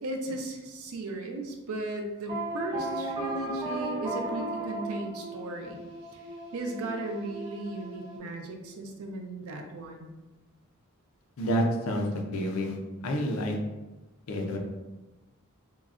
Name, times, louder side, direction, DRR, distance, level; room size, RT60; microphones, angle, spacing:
voice 1, 0.0-5.8 6.1-6.3 6.5-10.1, right 2 dB, 80° right, 3 dB, 0.5 m, -36 dB
sound 1, 2.3-8.2, right 1 dB, 20° right, 0.8 m, -35 dB
voice 2, 11.4-12.8 13.0-13.6 14.3-14.6, equal, 70° left, 2 dB, 0.5 m, -28 dB
3.7 x 2.1 x 2.4 m, 1.1 s
head